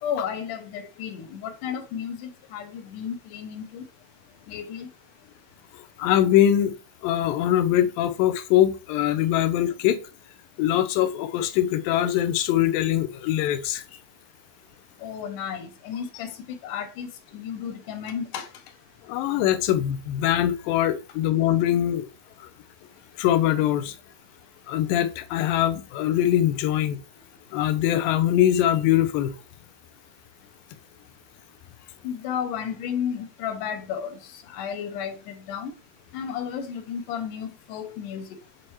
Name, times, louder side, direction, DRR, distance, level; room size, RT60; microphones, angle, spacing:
voice 1, 0.0-3.8 4.5-4.9 15.0-16.3 16.6-17.1 17.3-18.5 32.0-34.2 34.5-35.7 36.1-38.4, left 8 dB, 75° left, 2.3 m, -33 dB
voice 2, 6.0-6.7 7.0-10.0 10.6-13.8 19.1-22.1 22.4-22.5 23.2-24.0 24.7-27.0 27.5-29.3, left 11 dB, 90° left, 2.4 m, -22 dB
7.8 x 4.4 x 3.1 m
omnidirectional pair, 4.0 m